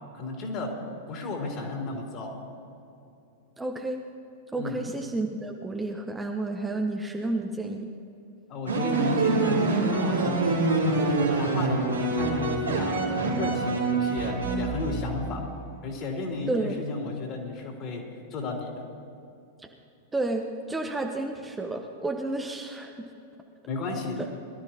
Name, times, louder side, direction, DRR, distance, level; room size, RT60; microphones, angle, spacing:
voice 1, 0.1-0.7 1.1-2.4 4.5-4.8 8.5-10.5 10.8-15.5 15.8-18.0 18.3-18.8 23.7-24.2, left 3 dB, 40° left, 0 dB, 3.0 m, -33 dB
voice 2, 3.6-4.0 4.5-7.9 16.5-16.8 20.1-23.1 24.2-24.3, right 2 dB, 10° right, 2 dB, 0.9 m, -31 dB
sound 1, 8.7-15.3, right 3 dB, 85° right, 2.6 m, -26 dB
22.0 x 12.5 x 2.9 m, 2.6 s
figure-of-eight pair, 95°, 0 cm